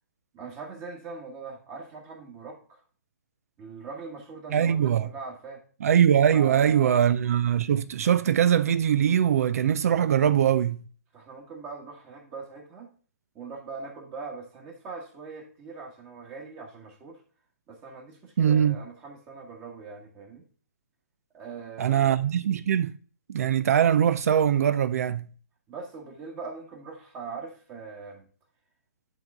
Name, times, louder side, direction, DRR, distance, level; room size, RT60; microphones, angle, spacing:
voice 1, 0.3-2.8 3.6-5.6 6.3-6.9 11.1-12.9 13.3-17.2 17.7-20.4 21.3-22.1 25.7-28.3, right 4 dB, 25° right, 1.4 m, -41 dB
voice 2, 4.5-5.1 5.8-10.8 18.4-18.8 21.8-22.9 23.3-25.2, right 9 dB, 60° right, 0.4 m, -22 dB
11.0 x 3.8 x 3.5 m
hypercardioid pair, 140°, 9 cm